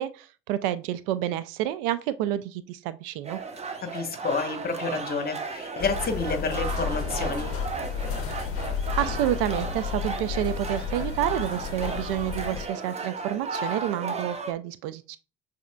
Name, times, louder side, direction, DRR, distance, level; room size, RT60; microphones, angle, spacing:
voice 1, 0.0-3.4 9.0-15.2, right 12 dB, 60° right, 0.4 m, -29 dB
sound 1, 3.2-14.5, right 4 dB, 20° right, 0.8 m, -35 dB
voice 2, 3.8-7.5, left 4 dB, 30° left, 1.1 m, -29 dB
sound 2, 5.8-12.7, left 6 dB, 45° left, 0.7 m, -32 dB
6.9 x 2.8 x 2.2 m
figure-of-eight pair, 65°, 31 cm